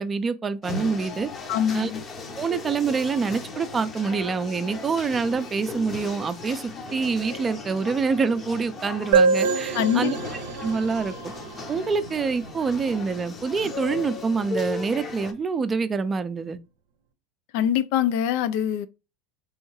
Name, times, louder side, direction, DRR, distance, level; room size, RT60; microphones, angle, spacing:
voice 1, 0.0-1.3 1.7-1.9 2.4-10.2 10.6-11.3 11.7-16.6, right 5 dB, 25° right, 0.5 m, -26 dB
sound 1, 0.6-15.3, left 3 dB, 35° left, 0.8 m, -37 dB
voice 2, 1.5-2.0 9.7-10.1 17.5-18.9, left 10 dB, 65° left, 0.4 m, -23 dB
sound 2, 9.1-12.7, right 5 dB, 75° right, 0.6 m, -25 dB
3.5 x 3.1 x 3.1 m
hypercardioid pair, 85°, 0 cm